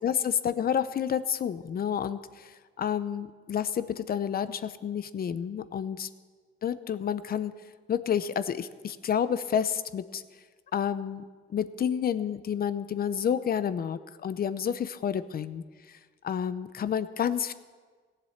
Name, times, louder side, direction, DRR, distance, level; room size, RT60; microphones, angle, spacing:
voice 1, 0.0-6.1 6.6-7.5 7.9-10.2 10.7-11.2 11.5-16.0 16.2-17.5, left 8 dB, 50° left, 14 dB, 0.7 m, -30 dB
16.5 x 7.7 x 7.2 m, 1.5 s
cardioid pair, 90°, 20 cm